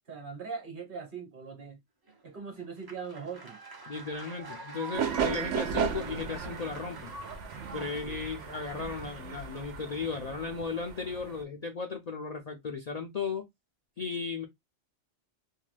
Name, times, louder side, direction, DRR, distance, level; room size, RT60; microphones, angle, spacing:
voice 1, 0.1-1.8 2.2-3.6 8.0-8.2, right 5 dB, 45° right, 1.1 m, -41 dB
sound 1, 2.1-10.2, right 2 dB, 30° right, 0.4 m, -47 dB
voice 2, 3.9-7.1 7.7-13.5 14.0-14.5, left 5 dB, 50° left, 0.5 m, -36 dB
sound 2, 4.9-11.4, right 7 dB, 85° right, 1.0 m, -35 dB
2.7 x 2.2 x 3.2 m
omnidirectional pair, 1.2 m